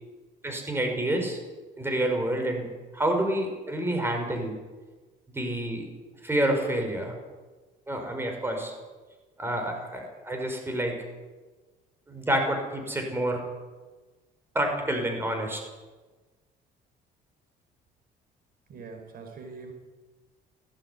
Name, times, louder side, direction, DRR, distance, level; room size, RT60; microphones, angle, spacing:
voice 1, 0.4-1.4 1.8-2.7 2.9-4.6 5.3-5.9 6.2-7.2 7.9-8.7 9.4-11.0 12.1-13.4 14.5-15.6, right 1 dB, 15° right, 3 dB, 5.8 m, -28 dB
voice 2, 18.7-19.7, right 4 dB, 60° right, 5 dB, 5.2 m, -43 dB
18.5 x 16.5 x 9.6 m, 1.3 s
cardioid pair, 110°, 17 cm